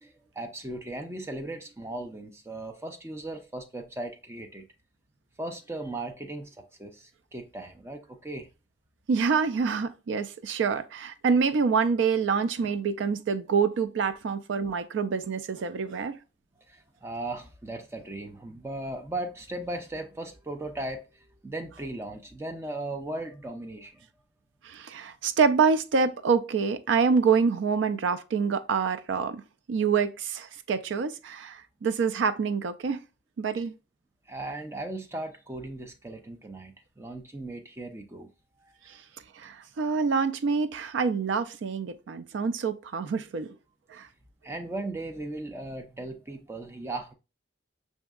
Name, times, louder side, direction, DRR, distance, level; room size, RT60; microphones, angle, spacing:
voice 1, 0.0-4.7 5.4-8.5 16.7-24.1 34.3-38.3 38.6-39.0 44.4-47.1, right 2 dB, 15° right, 0.4 m, -37 dB
voice 2, 9.1-16.2 24.6-29.4 29.7-33.0 33.4-33.7 39.4-43.5 43.9-44.1, right 5 dB, 85° right, 0.4 m, -26 dB
5.9 x 2.7 x 2.3 m
head